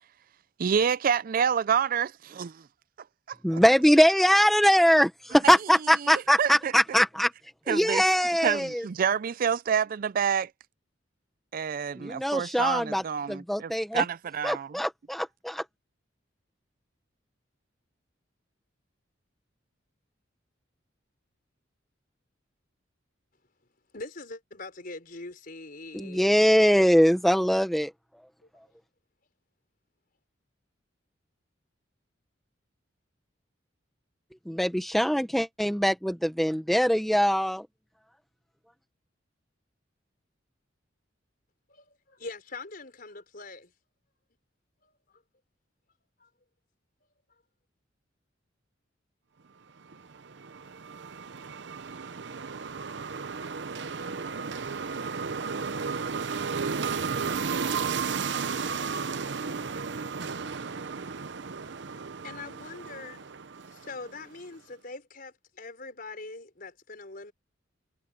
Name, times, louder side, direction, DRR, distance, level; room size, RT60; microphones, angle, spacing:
voice 1, 0.6-2.6 3.3-3.6 5.4-5.5 6.0-6.7 7.7-8.0 8.4-10.5 11.5-14.8, right 7 dB, 50° right, 0.4 m, -28 dB
voice 2, 3.4-7.3 7.7-8.8 12.0-13.0 13.3-14.0 14.4-15.6 25.9-27.9 34.5-37.7, equal, ahead, 0.8 m, -22 dB
voice 3, 23.9-26.3 28.4-28.6 41.7-43.7 44.8-45.0 46.2-46.3 62.2-63.3 63.7-67.3, left 3 dB, 50° left, 4.8 m, -43 dB
sound 1, 49.9-64.3, right 5 dB, 65° right, 0.8 m, -34 dB
head